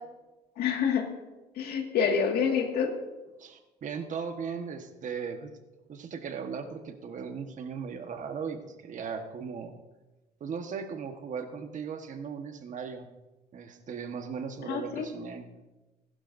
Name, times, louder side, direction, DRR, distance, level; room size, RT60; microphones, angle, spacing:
voice 1, 0.6-1.1 1.6-2.9 14.7-15.1, left 6 dB, 70° left, 3 dB, 2.0 m, -27 dB
voice 2, 3.4-5.5 5.9-9.8 10.4-13.1 13.5-15.5, right 6 dB, 50° right, 6 dB, 1.4 m, -37 dB
20.0 x 11.5 x 2.7 m, 1.1 s
cardioid pair, 110°, 17 cm